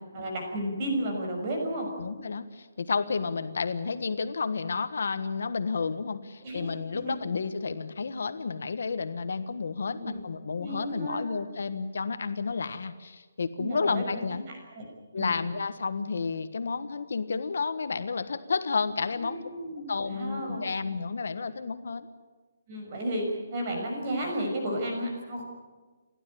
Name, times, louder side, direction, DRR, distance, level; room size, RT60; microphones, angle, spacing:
voice 1, 0.1-1.9 6.4-6.7 7.0-7.1 9.8-10.2 10.5-11.3 13.6-14.0 14.3-14.8 15.2-15.3 19.1-20.6 22.7-25.4, right 1 dB, 30° right, 1 dB, 6.0 m, -33 dB
voice 2, 2.0-14.4 15.1-19.4 19.9-22.1, left 4 dB, 65° left, 11 dB, 1.4 m, -31 dB
30.0 x 12.5 x 10.0 m, 1.3 s
hypercardioid pair, 175°, 0 cm